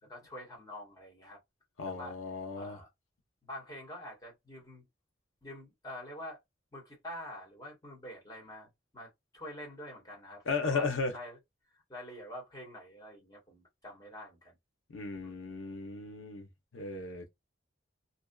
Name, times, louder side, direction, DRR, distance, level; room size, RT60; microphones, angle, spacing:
voice 1, 0.0-1.4 1.8-2.2 2.5-2.9 3.4-4.8 5.4-6.4 6.7-8.7 8.9-11.4 11.7-14.5 15.2-15.5, left 1 dB, 20° left, 1.2 m, -46 dB
voice 2, 1.8-2.8 10.5-11.1 14.9-16.5 16.7-17.3, left 4 dB, 90° left, 0.8 m, -35 dB
2.6 x 2.3 x 2.2 m
head